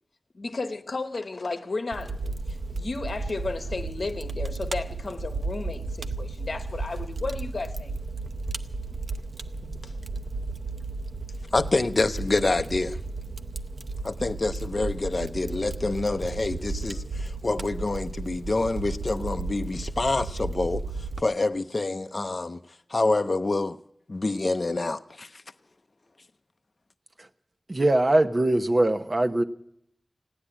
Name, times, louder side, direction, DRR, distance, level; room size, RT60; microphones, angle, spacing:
voice 1, 0.3-7.9 9.6-10.0, left 3 dB, 70° left, 0.9 m, -34 dB
Fire, 1.9-21.2, right 3 dB, 70° right, 0.7 m, -34 dB
voice 2, 11.5-13.0 14.0-22.6 22.9-23.8 24.1-25.4, left 2 dB, 55° left, 0.5 m, -27 dB
voice 3, 27.7-29.4, right 1 dB, 45° right, 0.9 m, -22 dB
16.5 x 9.9 x 8.7 m
wide cardioid pair, 55°, 0 cm